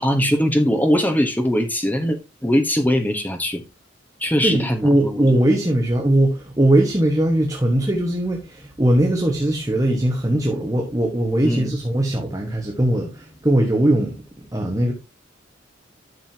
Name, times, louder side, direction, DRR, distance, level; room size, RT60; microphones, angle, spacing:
voice 1, 0.0-3.6 4.2-5.2 11.4-11.7, equal, 10° left, 1.1 m, -21 dB
voice 2, 4.4-14.2 14.5-14.9, right 1 dB, 20° right, 1.4 m, -20 dB
11.0 x 6.8 x 2.8 m
head